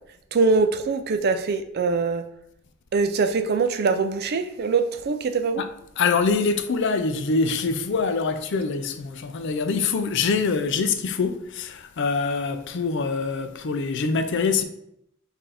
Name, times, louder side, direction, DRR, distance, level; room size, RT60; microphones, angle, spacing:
voice 1, 0.3-2.2 2.9-5.6, right 4 dB, 50° right, 0.4 m, -23 dB
voice 2, 6.0-14.6, left 4 dB, 60° left, 0.4 m, -24 dB
5.6 x 2.7 x 3.3 m
head